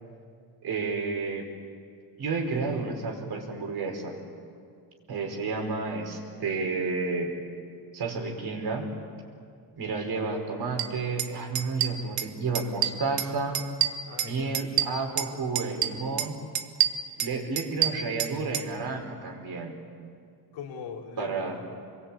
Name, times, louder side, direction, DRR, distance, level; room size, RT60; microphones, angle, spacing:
voice 1, 0.6-1.5 2.2-4.2 5.1-7.3 7.9-8.9 9.8-13.6 14.2-16.4 17.2-19.7 21.2-21.6, right 4 dB, 60° right, 2 dB, 5.2 m, -31 dB
sound 1, 10.8-10.9 11.2-11.3 11.5-12.3 12.5-13.3 13.5-15.3 15.6-16.3 16.5-18.7, right 11 dB, 75° right, 1.4 m, -27 dB
voice 2, 14.1-14.6 20.5-21.7, left 6 dB, 90° left, 0 dB, 3.6 m, -41 dB
26.0 x 22.0 x 8.8 m, 2.2 s
cardioid pair, 105°, 43 cm